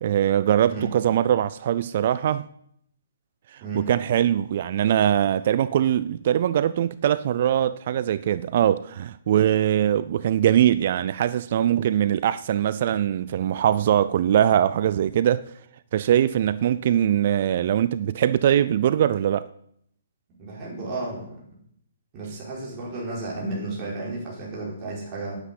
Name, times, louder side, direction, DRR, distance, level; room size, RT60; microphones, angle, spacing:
voice 1, 0.0-2.4 3.5-15.4 15.9-19.5, right 10 dB, 40° right, 0.4 m, -22 dB
voice 2, 20.4-21.4 22.1-25.4, right 2 dB, 20° right, 5.0 m, -33 dB
9.8 x 9.7 x 8.4 m
hypercardioid pair, 170°, 0 cm